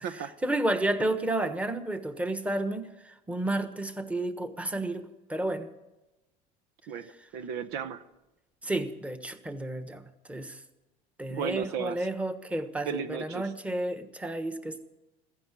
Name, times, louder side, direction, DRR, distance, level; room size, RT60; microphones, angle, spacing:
voice 1, 0.4-5.0 5.3-5.7 8.6-10.0 10.3-10.6 11.2-14.8, right 1 dB, 5° right, 9 dB, 1.3 m, -31 dB
voice 2, 6.9-8.0 11.3-12.1 12.8-13.5, right 7 dB, 70° right, 11 dB, 0.9 m, -35 dB
15.0 x 10.5 x 8.2 m, 1.0 s
supercardioid pair, 115°, 18 cm